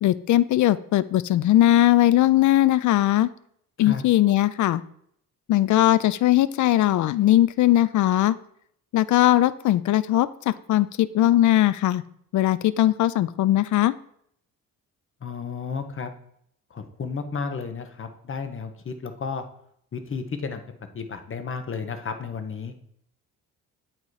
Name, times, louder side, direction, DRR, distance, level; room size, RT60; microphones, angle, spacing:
voice 1, 0.0-3.3 3.8-4.8 5.5-8.4 8.9-12.0 12.3-13.9, left 14 dB, 55° left, 17 dB, 0.4 m, -19 dB
voice 2, 15.2-16.1 16.7-19.4 19.9-20.6 20.9-22.7, left 5 dB, 35° left, 8 dB, 1.0 m, -32 dB
8.5 x 3.1 x 4.8 m, 0.68 s
supercardioid pair, 70°, 36 cm